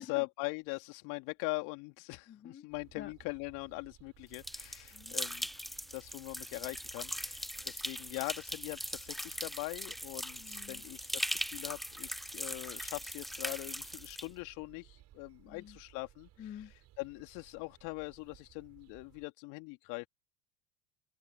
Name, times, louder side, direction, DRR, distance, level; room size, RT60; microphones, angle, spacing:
voice 1, 0.0-5.5 5.9-16.3 17.0-20.1, left 28 dB, 55° left, 2.9 m, -41 dB
voice 2, 2.3-2.7 2.9-3.1 4.9-5.2 10.4-10.8 15.4-15.8 16.4-16.7, left 9 dB, 30° left, 2.5 m, -48 dB
sound 1, 2.7-19.3, right 14 dB, 45° right, 5.0 m, -60 dB
sound 2, 4.3-14.3, equal, ahead, 0.9 m, -40 dB
open air
hypercardioid pair, 80°, 38 cm